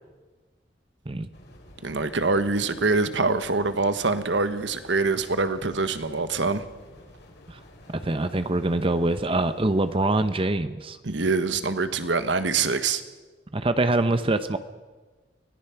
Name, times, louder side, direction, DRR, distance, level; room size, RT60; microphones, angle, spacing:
sound 1, 1.3-10.3, left 1 dB, 60° left, 4.2 m, -50 dB
voice 1, 1.8-6.6 11.0-13.0, right 3 dB, 75° right, 11 dB, 1.4 m, -24 dB
voice 2, 7.9-11.0 13.5-14.6, right 2 dB, 30° right, 11 dB, 0.8 m, -24 dB
25.0 x 17.5 x 5.9 m, 1.3 s
head